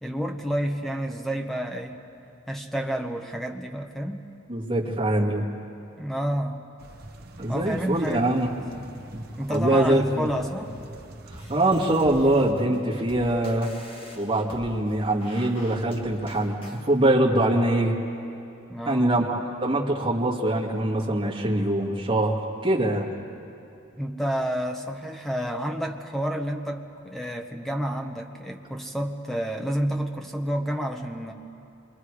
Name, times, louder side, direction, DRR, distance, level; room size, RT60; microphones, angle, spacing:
voice 1, 0.0-2.0 2.5-4.3 6.0-6.6 7.5-8.5 8.7-9.0 9.4-10.8 18.7-19.2 24.0-31.3, equal, ahead, 3 dB, 1.0 m, -30 dB
voice 2, 4.5-5.5 7.4-8.5 9.1-10.3 11.3-13.7 14.1-17.9 18.9-23.1, right 1 dB, 25° right, -4 dB, 2.2 m, -23 dB
sound 1, 6.8-12.5, right 1 dB, 45° right, 1.2 m, -44 dB
sound 2, 11.3-16.9, equal, 25° left, 1.7 m, -46 dB
28.5 x 23.5 x 4.9 m, 2.7 s
head